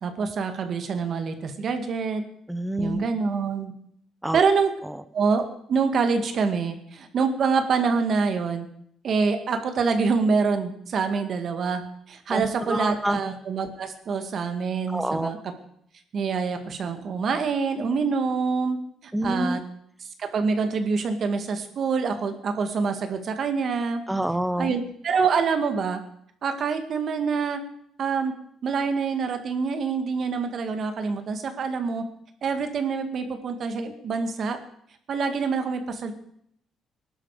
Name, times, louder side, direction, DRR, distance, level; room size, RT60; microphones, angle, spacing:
voice 1, 0.0-2.2 2.8-3.7 4.3-4.7 5.1-8.7 9.0-11.8 12.1-15.4 16.1-18.8 19.0-19.6 20.2-24.0 24.6-26.0 26.4-27.6 28.0-28.3 28.6-32.0 32.4-34.6 35.1-36.1, right 5 dB, 50° right, 7 dB, 2.0 m, -26 dB
voice 2, 2.5-3.1 4.2-4.4 4.8-5.0 12.3-13.2 14.9-15.3 19.1-19.6 24.1-24.7, right 1 dB, 5° right, 13 dB, 0.7 m, -27 dB
19.5 x 11.5 x 5.0 m, 0.69 s
cardioid pair, 115°, 0 cm